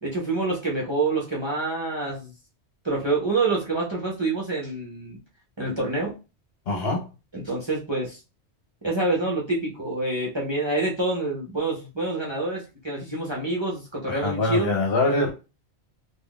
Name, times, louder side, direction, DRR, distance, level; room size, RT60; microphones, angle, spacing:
voice 1, 0.0-2.3 2.8-5.2 5.6-6.1 7.3-8.2 8.8-14.7, right 2 dB, 30° right, 0.6 m, -27 dB
voice 2, 6.7-7.1 14.1-15.3, left 2 dB, 60° left, 1.0 m, -24 dB
3.5 x 2.3 x 2.3 m
omnidirectional pair, 1.1 m